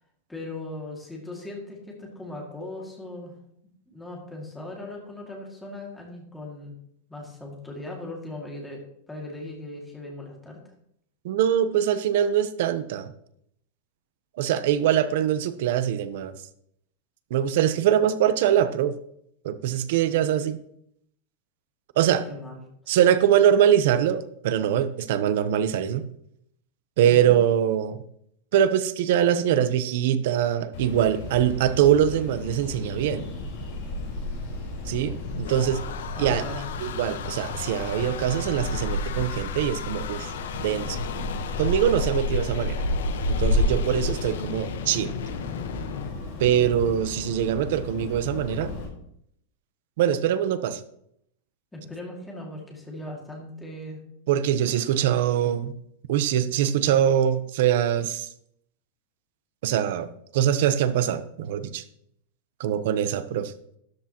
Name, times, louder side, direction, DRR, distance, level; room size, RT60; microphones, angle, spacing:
voice 1, 0.3-3.3 3.9-6.8 7.1-8.8 9.1-10.6 22.3-22.6 27.1-27.4 36.1-36.7 51.7-54.0, left 2 dB, 5° left, -1 dB, 2.3 m, -38 dB
voice 2, 11.2-13.1 14.4-16.3 17.3-18.9 19.4-20.6 22.0-22.2 22.9-26.0 27.0-28.0 28.5-33.2 34.9-35.8 36.2-36.4 36.8-40.3 40.6-41.0 41.6-42.7 43.3-45.1 46.4-48.7 50.0-50.8 54.3-55.7 56.1-58.3 59.6-60.1 60.3-61.8 62.6-63.5, right 10 dB, 55° right, 12 dB, 0.9 m, -23 dB
sound 1, 30.7-48.9, left 1 dB, 45° left, 4.1 m, -31 dB
sound 2, 34.9-46.1, left 8 dB, 80° left, 1.1 m, -37 dB
13.0 x 11.0 x 3.0 m, 0.72 s
supercardioid pair, 175°, 0 cm